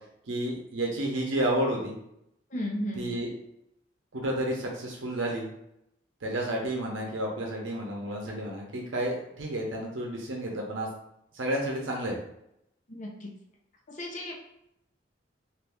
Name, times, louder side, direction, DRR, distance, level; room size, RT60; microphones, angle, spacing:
voice 1, 0.2-2.0 2.9-3.3 4.1-5.5 6.2-10.9 11.3-12.2, right 1 dB, 90° right, 0 dB, 0.7 m, -31 dB
voice 2, 2.5-3.0 12.9-13.3 14.0-14.3, equal, 40° left, -1 dB, 0.6 m, -34 dB
2.5 x 2.5 x 3.5 m, 0.79 s
head